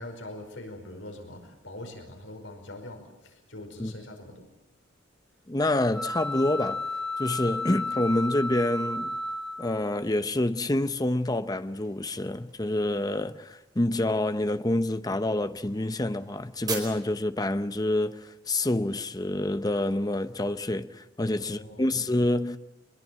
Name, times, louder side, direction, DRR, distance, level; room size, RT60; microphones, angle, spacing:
voice 1, 0.0-4.5 21.2-21.8, left 1 dB, 75° left, 5.2 m, -43 dB
voice 2, 5.5-6.8 7.2-9.2 9.6-22.6, left 1 dB, 20° left, 0.8 m, -27 dB
sound 1, 5.9-10.0, left 2 dB, 5° left, 2.2 m, -33 dB
sound 2, 7.4-19.2, right 4 dB, 20° right, 4.7 m, -47 dB
24.0 x 21.5 x 7.6 m
head